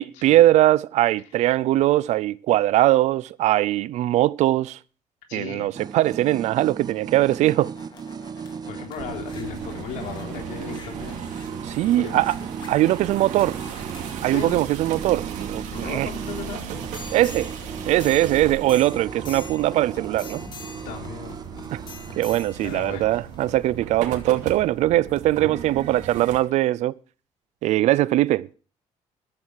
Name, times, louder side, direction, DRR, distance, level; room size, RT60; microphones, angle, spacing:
voice 1, 0.0-4.8 5.3-7.7 11.6-12.4 12.7-13.6 14.2-16.1 17.1-17.5 17.9-20.4 21.7-21.8 22.2-27.0 27.6-28.5, right 15 dB, 70° right, 0.5 m, -21 dB
voice 2, 5.3-5.7 8.4-11.2 11.8-12.2 12.7-12.8 14.0-14.6 15.7-16.7 20.8-21.4 22.6-23.1, left 7 dB, 85° left, 3.6 m, -37 dB
sound 1, 5.7-22.6, right 6 dB, 35° right, 0.7 m, -37 dB
sound 2, 6.9-24.6 25.2-25.3, left 5 dB, 40° left, 2.3 m, -45 dB
sound 3, 9.0-26.4, right 8 dB, 90° right, 2.5 m, -37 dB
14.0 x 12.0 x 4.7 m
cardioid pair, 130°, 12 cm